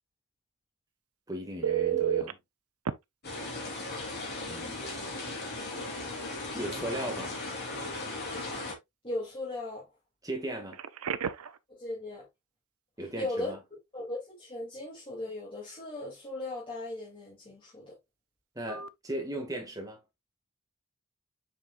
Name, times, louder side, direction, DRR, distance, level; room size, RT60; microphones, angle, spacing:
voice 1, 1.3-2.4 4.5-4.9 6.4-7.3 10.2-10.8 13.0-13.6 18.6-20.0, right 1 dB, 15° right, 2.0 m, -37 dB
Telephone, 1.6-2.3 2.9-3.0 4.7-4.9 5.3-5.4 10.7-11.6 18.7-18.9, right 9 dB, 75° right, 0.6 m, -30 dB
sound 1, 3.2-8.7, left 2 dB, 45° left, 3.0 m, -37 dB
voice 2, 9.0-9.9 11.7-12.2 13.1-13.6 13.9-18.0, left 2 dB, 25° left, 2.7 m, -37 dB
7.5 x 5.3 x 2.5 m
head